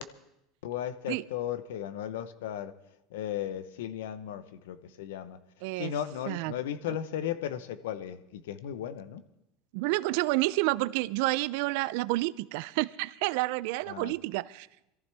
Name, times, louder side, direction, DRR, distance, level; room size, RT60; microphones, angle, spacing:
voice 1, 0.6-2.7 3.1-5.4 5.8-9.2 13.9-14.1, left 10 dB, 85° left, 13 dB, 0.9 m, -35 dB
voice 2, 5.6-5.9 6.3-6.5 9.7-14.7, right 20 dB, 70° right, 18 dB, 0.4 m, -29 dB
22.0 x 14.5 x 3.5 m, 0.86 s
supercardioid pair, 120°, 0 cm